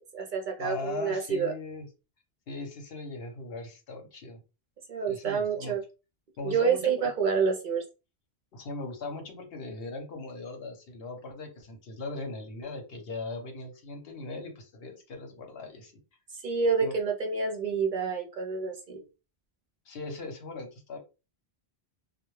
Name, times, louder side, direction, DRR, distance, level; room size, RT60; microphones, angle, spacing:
voice 1, 0.0-1.5 4.9-5.8 6.4-7.8 16.3-19.0, right 5 dB, 60° right, 2 dB, 0.7 m, -28 dB
voice 2, 0.6-1.9 2.5-4.4 5.1-5.8 6.4-7.1 8.5-15.9 16.8-17.0 19.9-21.0, left 3 dB, 70° left, 4 dB, 0.9 m, -39 dB
2.1 x 2.1 x 3.0 m, 0.30 s
omnidirectional pair, 1.0 m